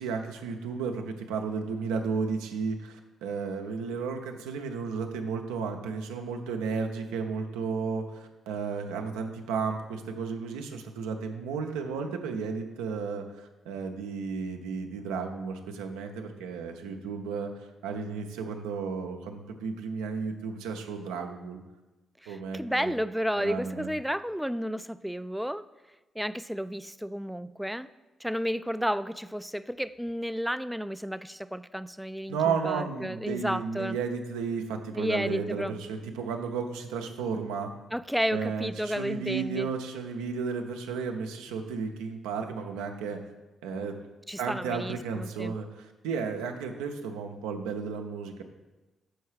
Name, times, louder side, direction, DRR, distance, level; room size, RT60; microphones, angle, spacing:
voice 1, 0.0-17.5 17.8-21.6 22.3-22.9 23.4-23.9 32.3-37.7 38.3-43.2 43.6-43.9 44.4-48.4, right 5 dB, 80° right, 4 dB, 0.6 m, -33 dB
voice 2, 22.2-25.7 26.2-27.9 28.2-34.0 35.0-35.8 37.9-39.7 44.3-45.6, equal, ahead, 14 dB, 0.3 m, -32 dB
6.4 x 4.6 x 4.8 m, 1.1 s
hypercardioid pair, 45°, 0 cm